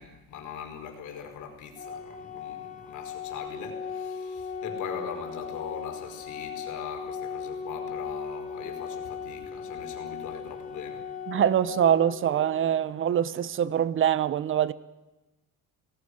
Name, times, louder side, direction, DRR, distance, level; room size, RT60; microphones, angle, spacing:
voice 1, 0.0-11.1, left 7 dB, 55° left, 5.3 m, -41 dB
Organ, 1.8-12.7, left 6 dB, 20° left, 3.0 m, -38 dB
voice 2, 11.3-14.7, right 9 dB, 35° right, 1.0 m, -24 dB
28.5 x 19.5 x 6.6 m
cardioid pair, 160°, 36 cm